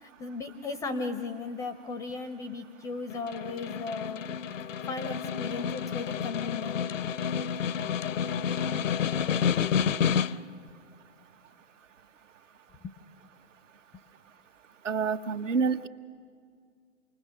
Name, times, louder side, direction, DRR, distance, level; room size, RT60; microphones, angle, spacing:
voice 1, 0.0-4.3 4.8-6.8 12.8-12.9, left 4 dB, 10° left, 11 dB, 0.5 m, -36 dB
Snare drum, 3.1-10.6, left 7 dB, 80° left, 0.6 m, -30 dB
voice 2, 14.8-15.9, right 5 dB, 75° right, 9 dB, 1.1 m, -27 dB
28.0 x 20.5 x 6.5 m, 2.1 s
figure-of-eight pair, 120°, 38 cm